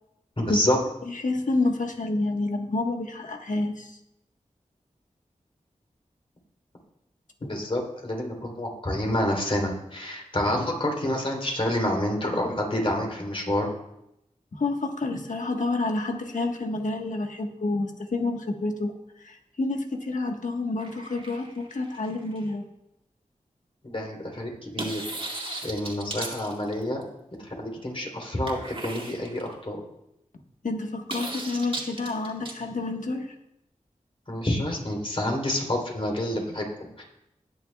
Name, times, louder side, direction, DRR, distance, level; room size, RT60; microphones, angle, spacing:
voice 1, 0.4-0.8 7.4-13.7 23.8-27.0 27.4-29.8 34.3-37.0, left 1 dB, 45° left, 0 dB, 3.4 m, -28 dB
voice 2, 1.1-4.0 14.5-18.9 19.2-22.6 30.6-33.3, left 2 dB, 70° left, 3 dB, 1.4 m, -29 dB
sound 1, 20.8-22.5 24.8-27.0 28.5-29.5 31.1-32.5, right 2 dB, 40° right, 2.3 m, -36 dB
19.5 x 7.4 x 2.4 m, 0.86 s
cardioid pair, 40°, 14 cm